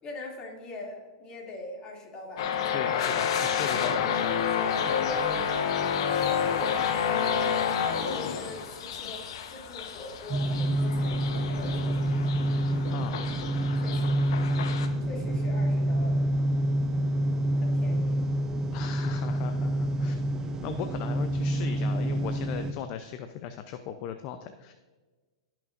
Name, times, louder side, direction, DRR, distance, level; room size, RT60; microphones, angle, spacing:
voice 1, 0.0-3.1 5.3-5.6 6.1-6.5 7.0-9.2 9.5-12.5 13.8-16.2 17.6-18.2, left 2 dB, 30° left, -1 dB, 2.6 m, -43 dB
sound 1, 2.4-14.9, left 7 dB, 65° left, 1.0 m, -29 dB
voice 2, 2.7-5.2 12.9-13.2 18.7-20.2 20.6-24.7, left 9 dB, 45° left, 8 dB, 0.6 m, -38 dB
sound 2, 10.3-22.7, right 1 dB, 20° right, 0.7 m, -27 dB
15.5 x 6.0 x 2.6 m, 1.3 s
hypercardioid pair, 120°, 3 cm